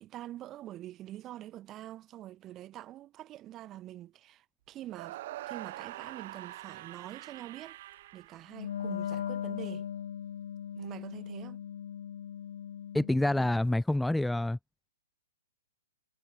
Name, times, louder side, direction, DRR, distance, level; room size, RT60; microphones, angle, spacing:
voice 1, 0.0-5.2 5.5-7.8 8.1-9.9 10.8-11.6, right 14 dB, 15° right, 1.9 m, -45 dB
sound 1, 4.9-9.1, right 16 dB, 35° right, 0.9 m, -44 dB
Wind instrument woodwind instrument, 8.5-13.6, left 9 dB, 55° left, 0.9 m, -39 dB
voice 2, 12.9-14.6, left 1 dB, ahead, 0.5 m, -27 dB
hypercardioid pair, 170°, 0 cm